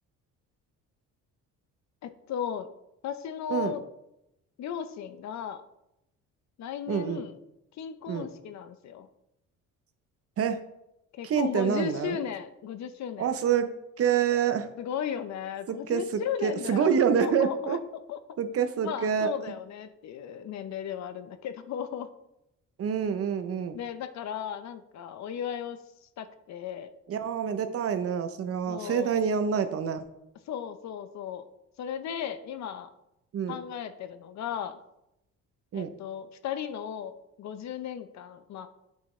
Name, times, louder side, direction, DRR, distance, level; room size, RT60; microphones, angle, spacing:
voice 1, 2.0-2.7 3.0-3.8 4.6-5.6 6.6-7.4 7.8-9.1 11.1-13.3 14.8-17.8 18.1-18.2 18.8-22.1 23.7-25.8 26.2-26.9 28.7-29.2 30.5-31.5 31.8-32.9 33.5-34.8 35.7-38.7, left 8 dB, 55° left, 11 dB, 0.6 m, -36 dB
voice 2, 6.9-7.2 8.1-8.3 10.4-10.6 11.2-12.2 13.2-13.7 14.0-14.7 15.7-17.8 18.4-19.3 22.8-23.8 27.1-30.0 33.3-33.5 35.7-35.9, right 7 dB, 45° right, 9 dB, 0.6 m, -27 dB
8.3 x 6.2 x 3.1 m, 0.85 s
cardioid pair, 135°, 33 cm